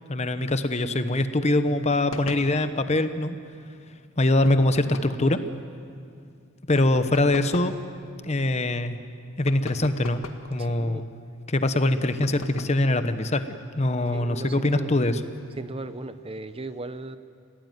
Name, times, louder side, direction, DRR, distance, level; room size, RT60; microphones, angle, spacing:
voice 1, 0.1-3.4 4.2-5.4 6.7-7.8 8.2-9.0 9.4-10.2 10.5-11.1 11.5-13.4 13.7-15.2, left 1 dB, 35° left, 10 dB, 1.0 m, -23 dB
sound 1, 2.1-2.5 4.4-5.2 6.8-7.8 9.5-10.5 12.2-12.9, left 2 dB, 85° left, 1.8 m, -39 dB
voice 2, 10.6-11.0 14.1-15.0 15.6-17.2, right 2 dB, 30° right, 12 dB, 0.7 m, -37 dB
28.0 x 17.5 x 9.3 m, 2.3 s
head